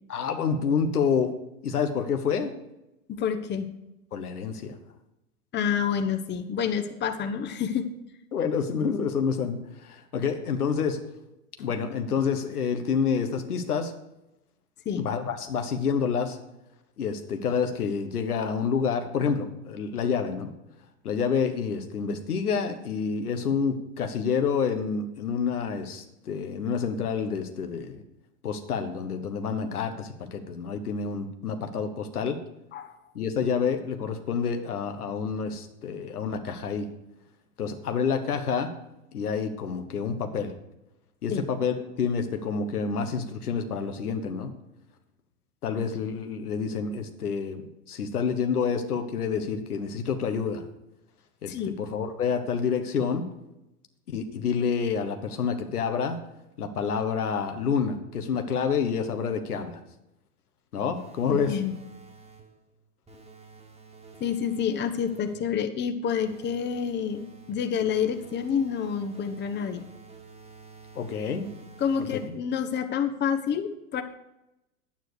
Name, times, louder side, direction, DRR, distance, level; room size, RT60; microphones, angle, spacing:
voice 1, 0.1-1.3 1.6-2.5 4.1-4.8 8.3-11.0 11.6-13.9 15.0-16.4 17.0-20.5 21.0-28.0 28.4-32.4 33.1-36.9 37.6-38.7 39.1-40.5 41.2-44.5 45.6-47.6 47.9-50.6 51.4-53.3 54.1-56.2 56.6-59.8 60.7-61.6 70.9-71.5 72.0-72.3, left 6 dB, 90° left, 7 dB, 1.3 m, -28 dB
voice 2, 3.1-3.7 5.5-7.9 14.8-15.1 32.7-32.9 41.3-41.5 51.5-51.8 61.2-61.7 64.2-69.8 71.8-74.0, left 7 dB, 25° left, 8 dB, 1.0 m, -28 dB
sound 1, 60.9-62.6 63.1-65.6 66.2-72.6, right 4 dB, 15° right, 1.6 m, -50 dB
9.6 x 9.0 x 4.8 m, 0.90 s
hypercardioid pair, 105°, 44 cm